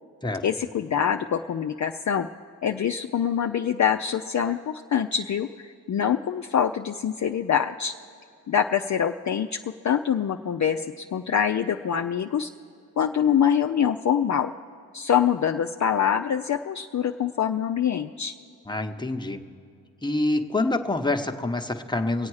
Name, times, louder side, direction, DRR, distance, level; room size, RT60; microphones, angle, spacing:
voice 1, 0.4-2.3 2.6-7.9 8.5-9.6 9.8-12.5 13.0-14.5 14.9-18.3, left 8 dB, 45° left, 4 dB, 0.5 m, -25 dB
voice 2, 18.7-19.4 20.0-22.3, left 2 dB, 10° left, 4 dB, 1.0 m, -26 dB
23.5 x 8.5 x 4.8 m, 2.5 s
cardioid pair, 50°, 41 cm